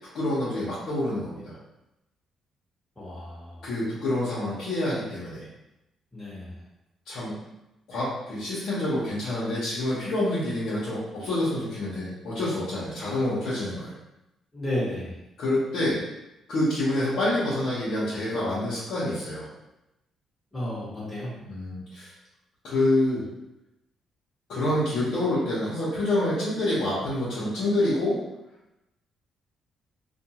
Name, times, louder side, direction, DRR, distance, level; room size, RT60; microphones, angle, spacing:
voice 1, 0.1-1.5 3.6-5.5 7.1-7.4 7.9-13.9 15.4-16.0 16.5-19.5 21.4-22.1 22.6-23.2 24.5-28.2, left 1 dB, 75° left, -10 dB, 0.9 m, -27 dB
voice 2, 2.9-3.6 6.1-6.6 14.5-15.2 20.5-21.3, left 1 dB, 15° left, -8 dB, 1.4 m, -32 dB
2.5 x 2.3 x 2.9 m, 0.93 s
cardioid pair, 90°, 0 cm